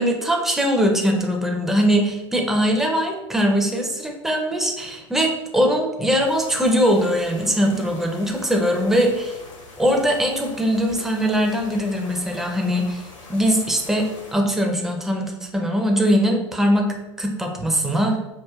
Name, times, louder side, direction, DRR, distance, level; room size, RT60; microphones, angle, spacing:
voice 1, 0.0-9.4 9.8-18.2, equal, ahead, 1 dB, 0.6 m, -21 dB
sound 1, 6.2-14.3, left 3 dB, 70° left, 1.3 m, -43 dB
4.9 x 2.4 x 2.3 m, 1.0 s
figure-of-eight pair, 85°, 16 cm